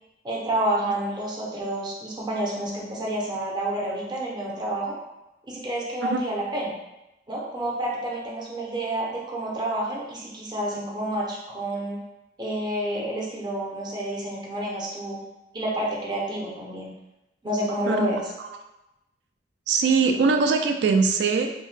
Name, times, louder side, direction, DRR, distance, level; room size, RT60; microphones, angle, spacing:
voice 1, 0.2-4.9 5.5-6.7 7.3-12.0 12.4-15.2 15.5-16.9 17.4-18.2, right 1 dB, 25° right, -4 dB, 0.6 m, -29 dB
voice 2, 19.7-21.5, right 4 dB, 70° right, 5 dB, 0.3 m, -21 dB
2.7 x 2.1 x 3.1 m, 0.94 s
head